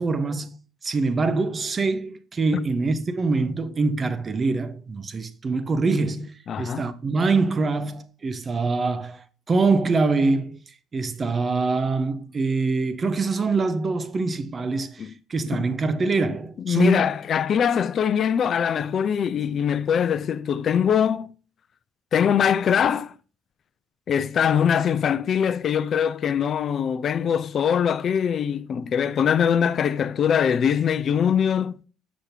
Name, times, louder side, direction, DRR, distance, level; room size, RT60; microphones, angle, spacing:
voice 1, 0.0-10.6 10.9-17.0, right 3 dB, 35° right, 0.8 m, -24 dB
voice 2, 6.5-6.9 15.0-15.1 15.5-15.7 16.6-21.3 22.1-23.1 24.1-31.8, left 8 dB, 50° left, 0.5 m, -22 dB
6.4 x 6.2 x 2.8 m
hypercardioid pair, 65°, 0 cm